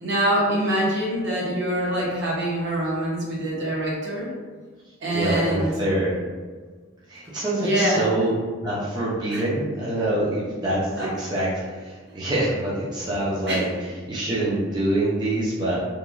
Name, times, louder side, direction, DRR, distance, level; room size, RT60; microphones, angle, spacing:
voice 1, 0.0-4.3 5.0-5.7 7.6-8.1 9.3-9.4 11.0-11.1 13.5-13.7, right 1 dB, 60° right, -5 dB, 0.7 m, -24 dB
voice 2, 5.1-6.1 7.1-8.3 8.6-13.7 14.1-15.8, right 1 dB, 20° right, -8 dB, 0.5 m, -25 dB
3.0 x 2.2 x 2.4 m, 1.5 s
head